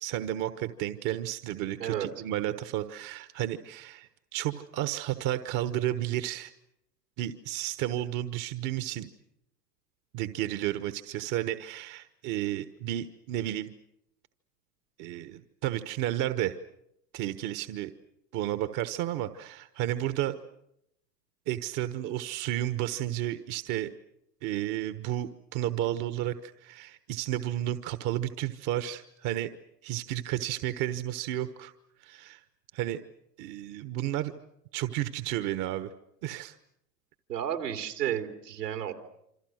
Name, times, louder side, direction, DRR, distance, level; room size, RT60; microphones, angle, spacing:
voice 1, 0.0-6.5 7.2-9.1 10.1-13.7 15.0-16.6 17.1-17.9 18.3-20.3 21.5-23.9 24.4-29.5 29.8-31.7 32.0-32.4 32.7-33.0 33.4-34.3 34.7-35.9 36.2-36.6, right 13 dB, 40° right, 11 dB, 1.3 m, -32 dB
voice 2, 37.3-38.9, right 10 dB, 80° right, 5 dB, 3.4 m, -32 dB
28.0 x 26.0 x 6.5 m, 0.80 s
hypercardioid pair, 95°, 47 cm